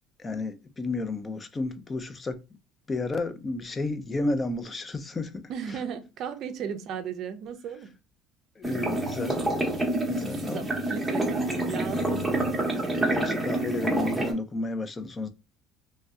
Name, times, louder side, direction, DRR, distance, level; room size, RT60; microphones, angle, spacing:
voice 1, 0.2-2.4 2.9-5.5 8.6-9.4 10.1-10.7 13.0-15.3, left 2 dB, 20° left, 0.4 m, -32 dB
voice 2, 5.5-8.0 10.2-12.7, right 7 dB, 50° right, 0.4 m, -36 dB
sound 1, 8.6-14.3, right 1 dB, 5° right, 0.8 m, -27 dB
3.1 x 2.6 x 2.3 m
cardioid pair, 145°, 0 cm